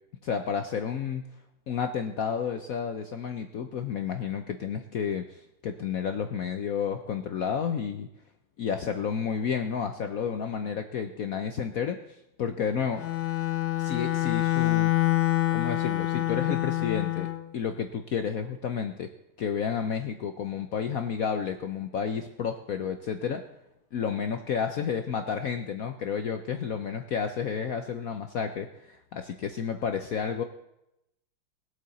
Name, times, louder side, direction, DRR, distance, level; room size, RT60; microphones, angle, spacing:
voice 1, 0.2-1.2 1.7-8.1 8.6-12.0 12.4-13.0 13.8-14.9 15.5-19.1 19.4-23.4 23.9-30.4, left 7 dB, 70° left, 7 dB, 0.8 m, -31 dB
Bowed string instrument, 12.9-17.4, left 15 dB, 90° left, 1.6 m, -26 dB
20.5 x 8.0 x 4.2 m, 0.83 s
omnidirectional pair, 2.3 m